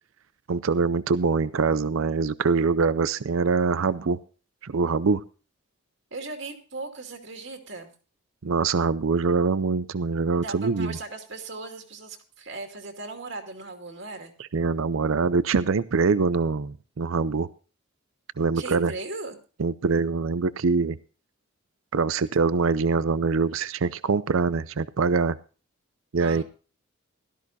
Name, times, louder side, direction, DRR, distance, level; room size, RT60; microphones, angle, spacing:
voice 1, 0.5-4.2 4.6-5.2 8.4-11.0 14.5-17.5 18.4-18.9 19.6-21.0 21.9-25.4 26.1-26.4, right 4 dB, 75° right, 16 dB, 0.5 m, -24 dB
voice 2, 6.1-7.9 10.4-14.3 18.5-19.4 26.2-26.4, right 3 dB, 60° right, 4 dB, 2.4 m, -38 dB
17.0 x 13.5 x 2.7 m, 0.36 s
head